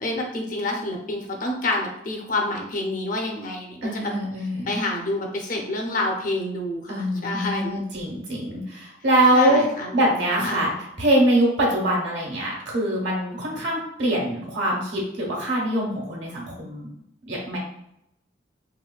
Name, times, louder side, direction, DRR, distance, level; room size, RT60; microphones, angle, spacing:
voice 1, 0.0-4.1 4.7-7.8 9.3-10.0 10.4-10.7, left 2 dB, 45° left, 1 dB, 0.6 m, -28 dB
voice 2, 3.8-4.8 6.9-9.6 9.9-10.7 11.0-16.9 17.3-17.6, right 1 dB, 80° right, -2 dB, 1.1 m, -23 dB
4.0 x 2.2 x 2.3 m, 0.79 s
head